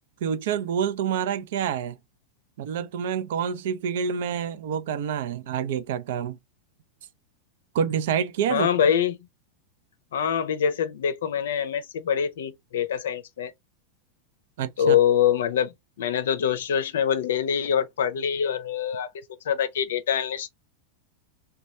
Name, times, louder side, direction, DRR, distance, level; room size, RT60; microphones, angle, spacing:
voice 1, 0.2-2.0 2.6-6.4 7.7-8.7 14.6-15.0, right 8 dB, 55° right, 0.4 m, -27 dB
voice 2, 8.5-9.2 10.1-13.5 14.8-19.1 19.4-20.5, left 8 dB, 60° left, 0.6 m, -24 dB
3.0 x 2.2 x 4.0 m
figure-of-eight pair, 90°, 0 cm